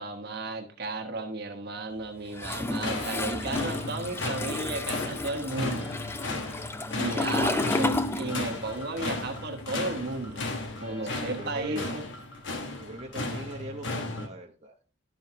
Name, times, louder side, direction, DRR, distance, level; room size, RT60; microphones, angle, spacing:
voice 1, 0.0-5.9 6.9-10.4 10.8-12.0, right 2 dB, 60° right, 4 dB, 1.2 m, -34 dB
sound 1, 2.3-12.7, left 2 dB, 30° left, 1.4 m, -50 dB
Toilet flush, 2.4-8.8 9.1-10.7, left 2 dB, 15° left, 0.4 m, -32 dB
sound 2, 2.7-14.3, left 2 dB, 80° left, 1.2 m, -35 dB
voice 2, 7.5-7.9 11.0-11.9 12.8-14.8, right 2 dB, 35° right, 0 dB, 0.9 m, -41 dB
12.0 x 5.6 x 2.8 m, 0.38 s
head